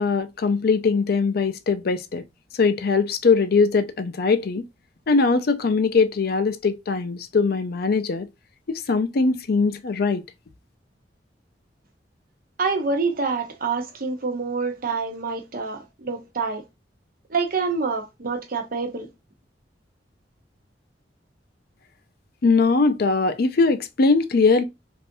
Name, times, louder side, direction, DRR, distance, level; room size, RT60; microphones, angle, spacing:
voice 1, 0.0-2.2 2.5-4.6 5.1-8.3 8.7-10.2 22.4-24.6, left 4 dB, 60° left, 0.5 m, -21 dB
voice 2, 12.6-16.6 17.3-19.1, right 4 dB, 55° right, 0.8 m, -26 dB
3.3 x 2.6 x 2.6 m
head